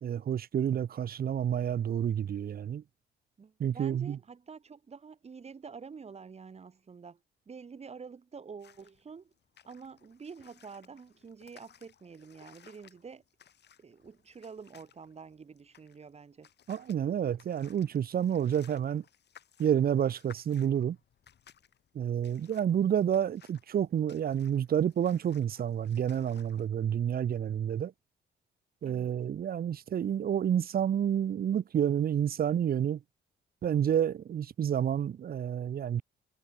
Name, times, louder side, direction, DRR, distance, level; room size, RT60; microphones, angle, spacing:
voice 1, 0.0-2.8 3.6-4.2 16.7-19.0 19.6-21.0 21.9-27.9 28.8-33.0 33.6-36.0, right 9 dB, 50° right, 0.8 m, -29 dB
voice 2, 3.4-7.2 7.5-9.3 9.6-13.2 13.8-16.5 28.8-29.2, right 5 dB, 30° right, 1.2 m, -48 dB
sound 1, 8.6-26.7, left 9 dB, 60° left, 4.0 m, -60 dB
cardioid pair, 90°, 20 cm